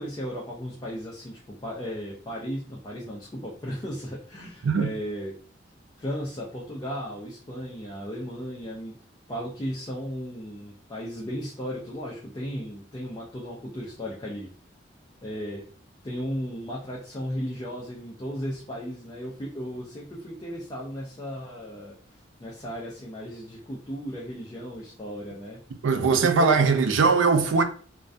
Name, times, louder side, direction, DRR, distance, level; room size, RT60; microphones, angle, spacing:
voice 1, 0.0-5.4 6.0-9.0 9.3-14.5 15.2-15.6 16.0-22.0 22.4-25.6 26.0-26.5, equal, 20° left, 0.4 m, -35 dB
voice 2, 25.8-27.6, right 4 dB, 85° right, 0.4 m, -20 dB
2.2 x 2.2 x 2.5 m
head